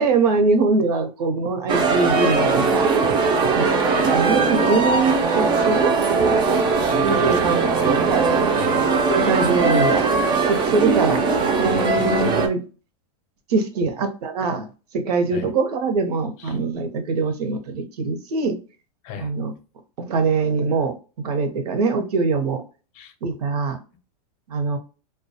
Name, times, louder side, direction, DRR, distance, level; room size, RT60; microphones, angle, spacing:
voice 1, 0.0-2.9 3.6-3.7 4.1-5.9 7.0-7.6 8.0-8.2 9.1-10.1 10.5-11.2 11.6-12.6 13.5-14.7 14.9-18.6 19.2-19.5 20.0-22.6 23.2-23.8 24.5-24.8, right 4 dB, 80° right, 0.8 m, -22 dB
sound 1, 1.7-12.5, right 4 dB, 25° right, 0.4 m, -19 dB
voice 2, 6.9-8.8 11.9-12.0 15.3-15.5 16.4-16.6 19.0-19.3 22.9-23.1, left 8 dB, 35° left, 0.6 m, -36 dB
2.2 x 2.2 x 2.6 m
supercardioid pair, 140°, 20 cm